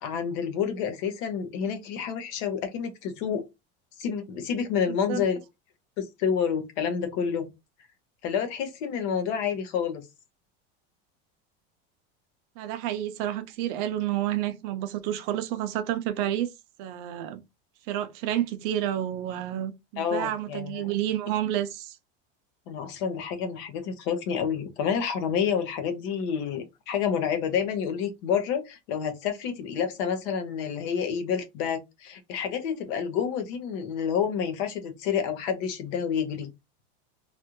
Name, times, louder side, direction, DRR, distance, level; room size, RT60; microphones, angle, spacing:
voice 1, 0.0-3.4 4.0-5.4 6.0-7.5 8.2-10.0 20.0-20.9 22.7-36.5, left 7 dB, 60° left, 0.9 m, -29 dB
voice 2, 4.9-5.2 12.6-16.5 16.8-17.4 17.9-22.0, right 12 dB, 50° right, 0.6 m, -30 dB
3.2 x 2.5 x 2.9 m
cardioid pair, 165°, 31 cm